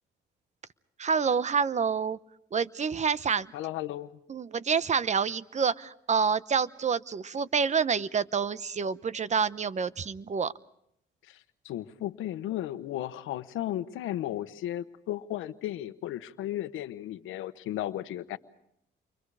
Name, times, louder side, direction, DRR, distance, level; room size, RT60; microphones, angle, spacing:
voice 1, 1.0-2.2 2.5-3.5 4.3-10.5, right 6 dB, 35° right, 16 dB, 0.9 m, -28 dB
voice 2, 3.5-4.2 11.3-18.4, left 13 dB, 85° left, 12 dB, 1.1 m, -35 dB
30.0 x 24.0 x 4.9 m, 0.74 s
cardioid pair, 90°, 20 cm